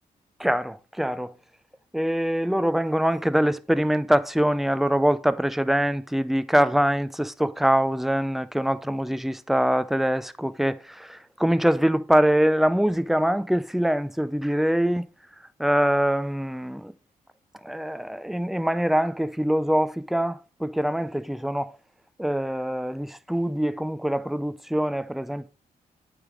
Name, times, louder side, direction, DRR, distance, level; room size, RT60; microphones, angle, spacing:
voice 1, 0.4-1.3 1.9-15.1 15.6-16.9 17.6-21.8 22.2-25.5, equal, ahead, 0.5 m, -24 dB
8.8 x 3.5 x 4.9 m
cardioid pair, 80°, 16 cm